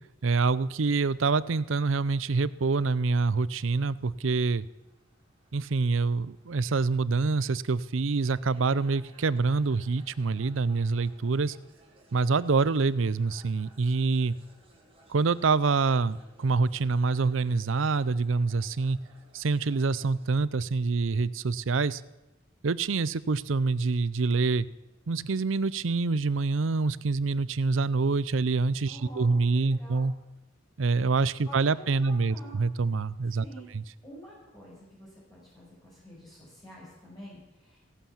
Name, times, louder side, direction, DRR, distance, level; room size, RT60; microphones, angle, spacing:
voice 1, 0.2-4.7 5.5-11.6 12.1-14.3 15.1-19.0 19.3-22.0 22.6-24.7 25.1-30.1 30.8-33.4 33.7-33.8, right 4 dB, 80° right, 19 dB, 0.6 m, -26 dB
trump what, 1.0-20.3, right 2 dB, 30° right, 5.2 m, -61 dB
voice 2, 28.9-30.1 31.4-32.7 33.4-33.7 34.0-37.8, equal, 20° left, -8 dB, 5.8 m, -48 dB
17.0 x 11.5 x 7.2 m, 0.99 s
head